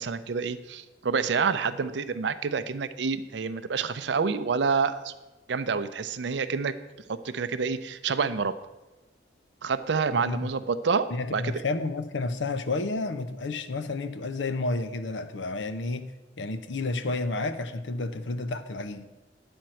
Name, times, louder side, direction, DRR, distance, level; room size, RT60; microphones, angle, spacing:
voice 1, 0.0-5.1 5.5-6.7 7.1-8.5 9.6-11.1 11.3-11.6, right 5 dB, 70° right, 0.5 m, -28 dB
voice 2, 11.1-16.1 16.4-19.1, left 3 dB, 80° left, 0.6 m, -31 dB
9.4 x 4.4 x 7.6 m
head